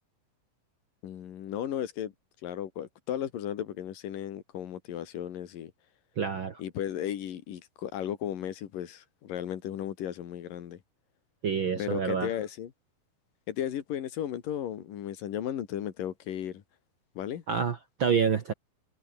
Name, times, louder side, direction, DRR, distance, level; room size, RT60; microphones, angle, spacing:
voice 1, 1.0-2.1 2.4-5.7 6.6-10.8 11.8-12.7 13.5-16.6 17.1-17.4, left 10 dB, 70° left, 3.5 m, -35 dB
voice 2, 6.2-6.6 11.4-12.3 17.5-18.5, right 6 dB, 60° right, 1.3 m, -28 dB
omnidirectional pair, 4.1 m